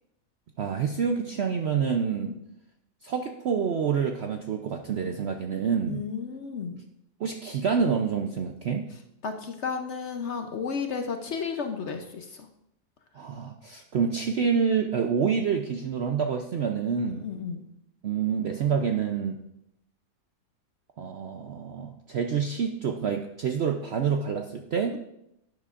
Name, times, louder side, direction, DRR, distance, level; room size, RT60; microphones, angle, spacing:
voice 1, 0.6-2.3 3.0-6.0 7.2-8.9 13.1-17.2 18.0-19.4 21.0-25.0, right 6 dB, 65° right, 4 dB, 0.6 m, -27 dB
voice 2, 5.9-6.8 9.2-12.5 17.1-17.6 24.9-25.0, left 5 dB, 55° left, 5 dB, 0.8 m, -33 dB
12.0 x 9.3 x 2.5 m, 0.82 s
omnidirectional pair, 1.7 m